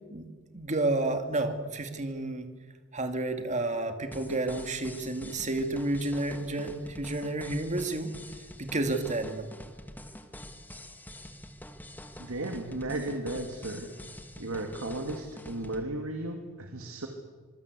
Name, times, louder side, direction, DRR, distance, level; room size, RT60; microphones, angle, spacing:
voice 1, 0.5-2.5 2.9-8.1 8.6-9.5, right 2 dB, 35° right, 6 dB, 2.3 m, -30 dB
sound 1, 4.1-15.8, left 1 dB, 10° left, 1.7 m, -46 dB
voice 2, 12.2-13.9 14.4-17.1, right 2 dB, 75° right, 4 dB, 2.4 m, -35 dB
25.5 x 22.0 x 8.4 m, 1.5 s
head